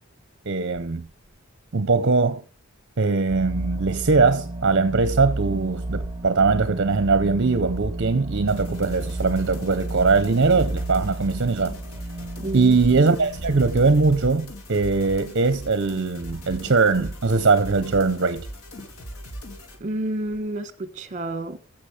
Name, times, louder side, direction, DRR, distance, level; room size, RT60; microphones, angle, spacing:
voice 1, 0.5-1.1 1.7-2.4 3.0-11.8 12.5-18.5, right 4 dB, 55° right, 0.7 m, -21 dB
sound 1, 1.1-2.2 2.7-2.8 3.1-3.3 3.9-4.2 5.0-6.5 7.1-11.0 11.5-14.6 15.0-15.3 15.6-15.7 15.9-16.7 18.4-18.5 18.8-19.1 19.4-20.4, right 1 dB, 40° left, 3.1 m, -45 dB
sound 2, 3.3-14.1, right 2 dB, 20° right, 2.0 m, -32 dB
sound 3, 8.5-19.8, equal, 90° left, 2.7 m, -39 dB
voice 2, 12.4-12.8 19.8-21.6, right 1 dB, 35° right, 1.4 m, -29 dB
15.0 x 6.0 x 4.9 m
head